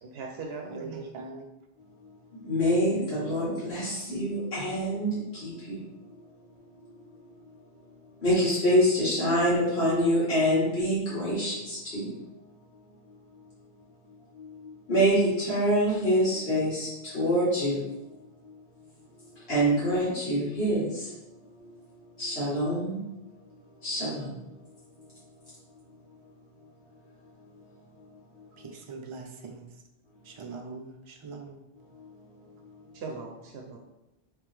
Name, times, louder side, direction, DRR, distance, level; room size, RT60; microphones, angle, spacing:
voice 1, 0.0-1.1 32.9-33.8, right 4 dB, 80° right, 0 dB, 0.8 m, -39 dB
voice 2, 0.7-1.5 28.6-29.7 30.2-31.6, right 4 dB, 45° right, 3 dB, 0.4 m, -42 dB
voice 3, 2.4-5.8 8.2-12.1 14.3-17.8 18.4-18.6 19.5-21.2 21.6-21.7 22.2-23.0 23.8-24.5 31.9-32.1, equal, 80° left, -10 dB, 1.8 m, -26 dB
3.4 x 3.2 x 3.2 m, 0.94 s
omnidirectional pair, 1.0 m